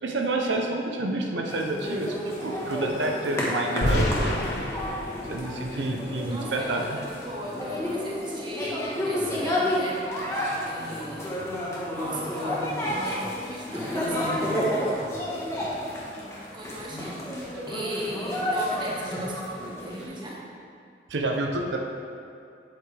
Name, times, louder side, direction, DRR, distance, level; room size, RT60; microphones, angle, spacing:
voice 1, 0.0-4.4 5.3-7.0 21.1-21.8, right 2 dB, 85° right, 1 dB, 0.7 m, -29 dB
sound 1, 1.5-20.0, left 1 dB, 15° left, 1.3 m, -31 dB
sound 2, 3.8-6.8, left 1 dB, 70° left, 1.0 m, -29 dB
voice 2, 6.2-10.0 10.6-11.4 11.9-15.0 16.5-17.2 17.7-20.4, equal, 25° right, -4 dB, 1.5 m, -37 dB
8.8 x 8.5 x 3.4 m, 2.5 s
head